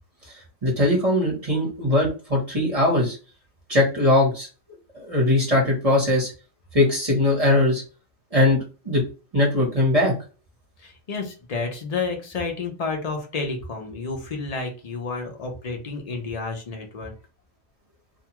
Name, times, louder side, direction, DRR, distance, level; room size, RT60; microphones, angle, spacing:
voice 1, 0.6-3.2 3.7-4.5 4.9-6.3 6.7-7.8 8.3-8.6 8.8-9.0 9.3-10.1, left 1 dB, 30° right, -2 dB, 1.0 m, -20 dB
voice 2, 10.8-17.1, left 4 dB, 55° left, 3 dB, 0.4 m, -30 dB
2.6 x 2.3 x 2.9 m, 0.33 s
omnidirectional pair, 1.5 m